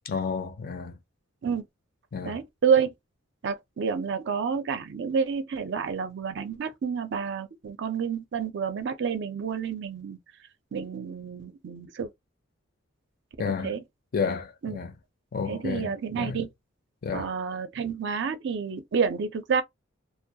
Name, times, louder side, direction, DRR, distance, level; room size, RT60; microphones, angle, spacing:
voice 1, 0.1-1.0 2.1-2.4 13.4-13.8 14.1-14.9 15.3-16.4 17.0-17.3, left 5 dB, 45° left, 0.4 m, -31 dB
voice 2, 2.2-2.9 3.4-10.2 10.7-12.1 13.5-13.8 14.6-14.8 15.5-16.5 17.1-19.6, right 6 dB, 55° right, 0.4 m, -29 dB
2.2 x 2.0 x 2.7 m
head